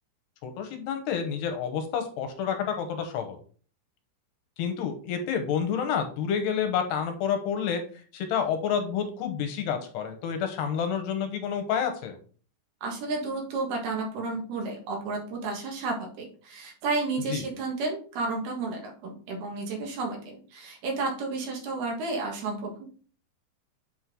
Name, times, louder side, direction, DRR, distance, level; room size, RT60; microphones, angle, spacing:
voice 1, 0.4-3.4 4.6-12.2 17.3-17.5, left 7 dB, 75° left, 6 dB, 2.9 m, -29 dB
voice 2, 12.8-22.9, right 3 dB, 70° right, 0 dB, 3.3 m, -32 dB
8.1 x 4.4 x 3.7 m, 0.41 s
omnidirectional pair, 4.9 m